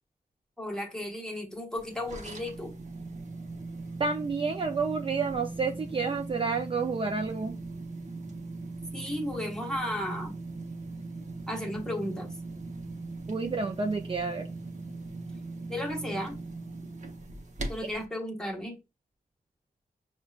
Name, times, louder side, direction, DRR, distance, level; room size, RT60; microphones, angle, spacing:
voice 1, 0.6-2.7 8.9-10.4 11.5-12.3 15.7-16.4 17.7-18.8, left 1 dB, 5° left, 1.0 m, -34 dB
sound 1, 1.8-18.0, right 3 dB, 50° right, 0.8 m, -40 dB
voice 2, 4.0-7.6 13.3-14.5, right 4 dB, 35° right, 0.3 m, -30 dB
5.9 x 2.2 x 2.3 m
wide cardioid pair, 120°, 16 cm